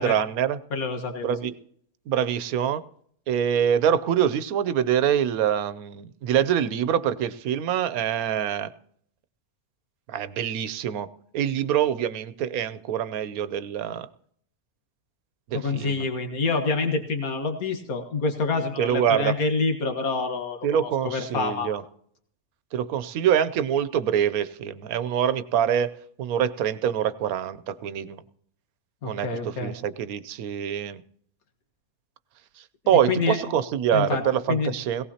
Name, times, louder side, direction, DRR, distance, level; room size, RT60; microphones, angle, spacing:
voice 1, 0.0-0.6 1.2-1.6 2.1-2.8 3.3-8.7 10.1-11.1 11.3-14.1 15.5-16.0 18.8-19.3 20.6-21.8 22.7-25.9 26.2-28.2 29.0-31.0 32.9-35.0, right 9 dB, 90° right, 14 dB, 1.2 m, -25 dB
voice 2, 0.7-1.4 15.5-21.7 29.0-29.7 32.9-33.4 33.9-34.2 34.5-34.7, left 4 dB, 85° left, 4 dB, 2.0 m, -27 dB
18.5 x 17.5 x 2.8 m, 0.64 s
omnidirectional pair, 1.5 m